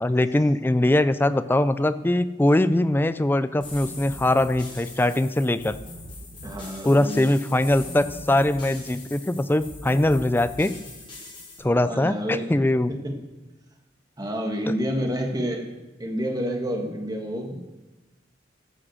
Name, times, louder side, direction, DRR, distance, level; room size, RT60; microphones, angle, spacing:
voice 1, 0.0-5.8 6.8-10.7 11.6-12.9, left 1 dB, 10° left, 14 dB, 0.4 m, -22 dB
sound 1, 3.6-11.6, left 2 dB, 25° left, 4.0 m, -41 dB
voice 2, 6.4-7.3 11.8-12.5 12.9-13.1 14.2-15.7 16.0-17.7, equal, 20° right, 2 dB, 1.6 m, -29 dB
14.5 x 6.2 x 7.8 m, 1.1 s
head